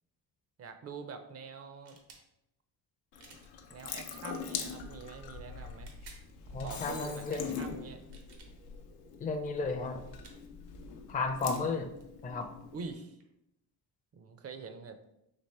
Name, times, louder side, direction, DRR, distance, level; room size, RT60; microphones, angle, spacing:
voice 1, 0.6-2.0 3.7-6.0 6.5-8.0 12.7-13.2 14.1-15.0, right 4 dB, 40° right, 8 dB, 0.5 m, -45 dB
sound 1, 1.8-2.2 3.2-3.5 4.4-4.7 5.7-6.3 7.3-7.5 8.0-8.5 9.5-9.6 10.2-10.4 11.7-11.8 12.0-13.3, right 4 dB, 80° right, 0.9 m, -56 dB
Water tap faucet / Sink (filling or washing) / Drip, 3.1-12.9, left 6 dB, 90° left, 0.6 m, -43 dB
Shatter, 6.5-7.6, left 5 dB, 60° left, 1.0 m, -46 dB
voice 2, 6.5-7.6 9.2-10.0 11.1-11.9 12.2-12.5, left 4 dB, 20° left, 5 dB, 0.4 m, -33 dB
4.2 x 2.9 x 3.3 m, 0.82 s
cardioid pair, 95°, 39 cm